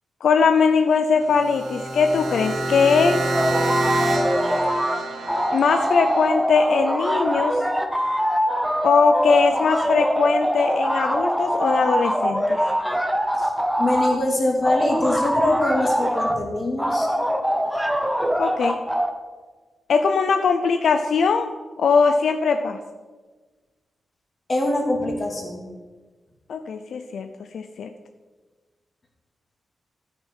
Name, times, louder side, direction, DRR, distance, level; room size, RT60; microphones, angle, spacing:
voice 1, 0.2-3.2 5.5-7.6 8.8-12.7 18.4-18.8 19.9-21.5 21.8-22.8 26.5-27.3 27.5-27.9, left 5 dB, 75° left, 7 dB, 0.6 m, -20 dB
sound 1, 1.2-6.3, right 2 dB, 65° right, 1.7 m, -27 dB
sound 2, 3.3-5.0 5.3-14.2 14.6-16.4 16.8-19.1, equal, ahead, 0.9 m, -23 dB
voice 2, 13.8-17.1 24.5-25.6, left 1 dB, 30° left, 1 dB, 2.2 m, -23 dB
12.5 x 9.4 x 4.5 m, 1.3 s
wide cardioid pair, 165°, 0 cm